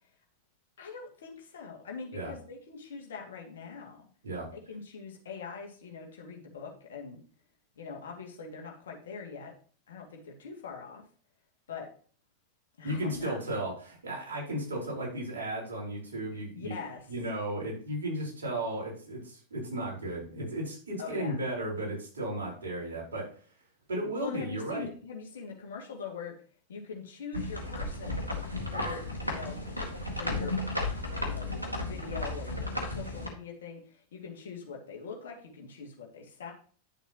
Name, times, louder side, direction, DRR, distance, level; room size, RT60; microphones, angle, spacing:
voice 1, 0.8-4.1 4.5-7.2 7.8-9.5 9.9-11.0 11.7-11.9 12.8-13.4 16.3-17.1 21.0-21.4 24.2-26.3 26.7-28.2 28.7-29.7 30.2-30.6 31.1-36.5, left 5 dB, 60° left, 0 dB, 2.3 m, -43 dB
voice 2, 12.8-16.7 17.1-23.3 23.9-24.9 29.9-30.2, right 1 dB, 65° right, -3 dB, 4.6 m, -35 dB
sound 1, 27.3-33.3, left 2 dB, 90° left, 1.8 m, -34 dB
10.5 x 7.1 x 3.0 m, 0.43 s
figure-of-eight pair, 90°, 0 cm